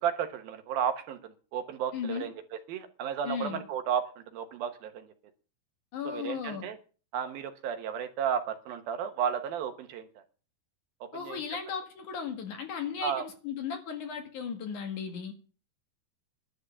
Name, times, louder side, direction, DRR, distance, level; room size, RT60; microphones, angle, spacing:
voice 1, 0.0-2.3 2.7-4.0 4.3-5.1 6.0-6.8 7.1-10.2 11.0-11.4 13.0-13.2, right 8 dB, 70° right, 7 dB, 2.9 m, -33 dB
voice 2, 1.9-2.3 3.2-3.6 5.9-6.7 11.1-15.3, left 7 dB, 55° left, 5 dB, 2.8 m, -36 dB
11.5 x 9.4 x 6.7 m, 0.36 s
omnidirectional pair, 4.5 m